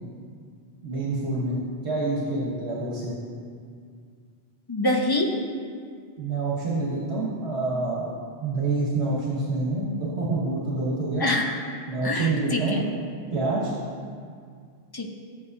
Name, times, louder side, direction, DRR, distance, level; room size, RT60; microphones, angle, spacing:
voice 1, 0.8-3.1 6.2-8.1 8.4-11.2 11.9-12.8 13.3-13.7, right 2 dB, 75° right, -6 dB, 1.5 m, -27 dB
voice 2, 4.7-5.3 11.2-11.6 12.0-12.8 14.9-15.1, left 1 dB, 25° left, 2 dB, 0.5 m, -25 dB
11.5 x 8.4 x 2.7 m, 2.1 s
omnidirectional pair, 1.2 m